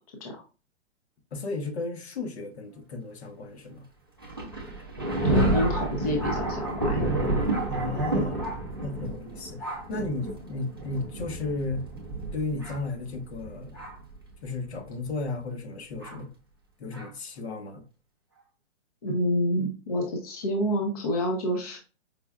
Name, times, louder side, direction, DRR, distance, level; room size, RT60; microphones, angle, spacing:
voice 1, 1.3-3.8 7.7-8.5 8.8-11.9 12.3-13.7 14.4-16.3 16.8-17.8, left 3 dB, 65° left, 1.0 m, -34 dB
Thunder, 4.2-14.1 14.9-15.0 16.0-16.2 16.9-17.1, right 1 dB, 20° right, 0.3 m, -30 dB
voice 2, 5.2-7.2 19.0-21.8, equal, 30° left, 0.6 m, -28 dB
5.0 x 2.2 x 2.3 m
hypercardioid pair, 170°, 36 cm